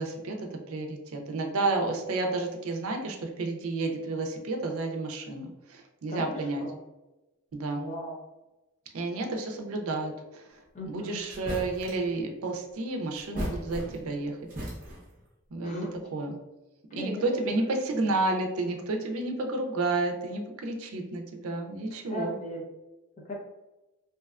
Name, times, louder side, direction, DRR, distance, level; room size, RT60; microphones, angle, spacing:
voice 1, 0.0-6.6 7.5-7.8 8.9-10.6 10.9-14.4 15.5-16.3 16.9-22.3, right 2 dB, 85° right, 3 dB, 0.4 m, -31 dB
voice 2, 7.8-8.1 10.7-11.2 15.6-15.9 17.0-17.2 22.1-22.6 23.3-23.4, equal, 35° left, -2 dB, 0.6 m, -36 dB
sound 1, 10.8-10.9 11.3-12.1 13.1-14.2 14.5-15.2, equal, 40° right, 0.7 m, -37 dB
2.7 x 2.2 x 2.3 m, 1.0 s
head